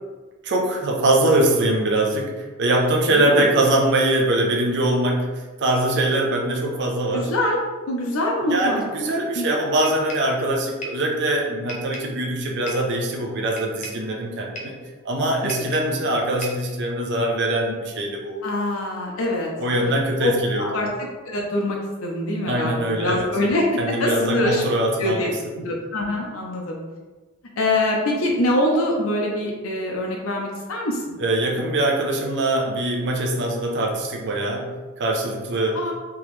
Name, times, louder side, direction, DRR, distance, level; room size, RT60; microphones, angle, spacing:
voice 1, 0.4-7.3 8.5-14.8 15.0-18.4 19.6-20.7 22.5-23.3 23.8-25.3 31.2-35.8, right 1 dB, 55° right, 0 dB, 0.6 m, -22 dB
voice 2, 3.1-3.5 7.1-7.6 7.9-8.8 9.3-9.5 15.4-15.5 18.4-20.3 20.6-20.9 21.3-24.6 25.0-26.8 27.6-31.2 35.7-35.9, left 1 dB, 75° left, -1 dB, 0.6 m, -24 dB
sound 1, 9.8-10.4 10.8-11.1 11.7-12.2 12.7-12.9 13.6-14.1 14.6-14.8 15.5-16.0 16.4-16.7, right 1 dB, 35° left, 0.6 m, -36 dB
3.5 x 2.9 x 3.1 m, 1.3 s
head